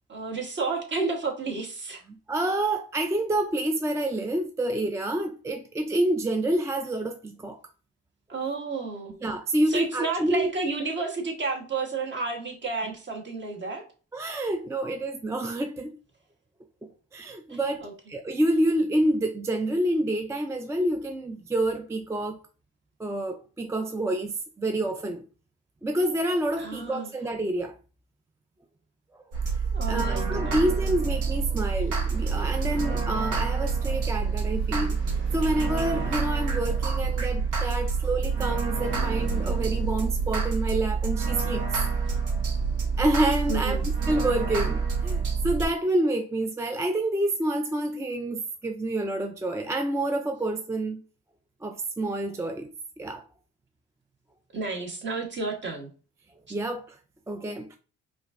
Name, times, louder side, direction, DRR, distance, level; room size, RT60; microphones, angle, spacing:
voice 1, 0.1-2.0 8.3-9.2 9.7-13.8 17.5-17.9 26.6-27.1 29.7-30.6 43.5-43.8 54.5-55.9, right 3 dB, 40° right, 1.2 m, -31 dB
voice 2, 2.1-7.6 9.2-10.5 14.1-15.9 16.8-22.4 23.0-25.2 25.8-27.7 29.1-29.6 29.9-35.0 35.3-41.6 43.0-51.0 51.6-52.7 53.0-53.2 56.5-57.0 57.3-57.8, right 1 dB, 10° right, 0.3 m, -28 dB
sound 1, 29.3-45.7, right 5 dB, 85° right, 1.0 m, -27 dB
sound 2, 31.8-45.2, right 3 dB, 65° right, 1.4 m, -46 dB
4.9 x 2.5 x 2.5 m
cardioid pair, 90°, 30 cm